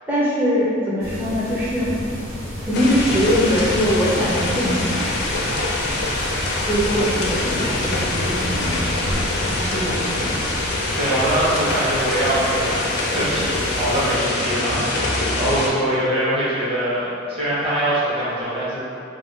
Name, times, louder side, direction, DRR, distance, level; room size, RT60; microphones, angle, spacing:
voice 1, 0.1-1.9 2.7-5.2 6.6-9.0 9.2-10.4, equal, 10° right, -7 dB, 0.4 m, -22 dB
sound 1, 1.0-14.1, equal, 90° right, 1.2 m, -31 dB
sound 2, 2.7-15.7, left 2 dB, 55° left, 0.4 m, -24 dB
voice 2, 11.0-12.8 13.1-18.8, right 1 dB, 30° right, -10 dB, 0.8 m, -23 dB
2.4 x 2.1 x 3.5 m, 2.4 s
head